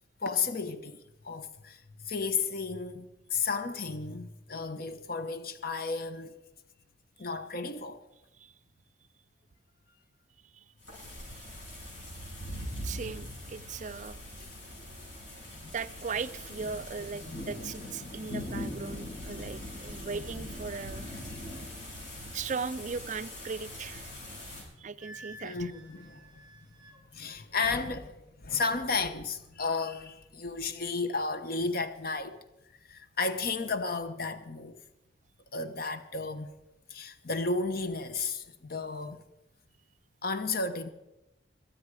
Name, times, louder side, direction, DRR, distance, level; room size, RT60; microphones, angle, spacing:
voice 1, 0.2-6.4 7.2-8.0 14.4-14.6 15.4-15.7 17.3-17.4 18.1-18.4 18.8-19.0 19.9-20.4 21.3-21.6 25.4-26.3 27.1-32.4 32.7-34.8 35.5-36.5 36.9-39.2 40.2-40.9, left 4 dB, 55° left, 1.0 m, -33 dB
sound 1, 10.8-24.6, left 1 dB, 80° left, 6.9 m, -41 dB
voice 2, 12.8-14.2 15.7-21.1 22.3-24.1 24.8-25.7, right 5 dB, 40° right, 0.4 m, -38 dB
Wind instrument woodwind instrument, 25.0-27.0, right 1 dB, 25° right, 2.2 m, -51 dB
22.0 x 8.9 x 4.8 m
head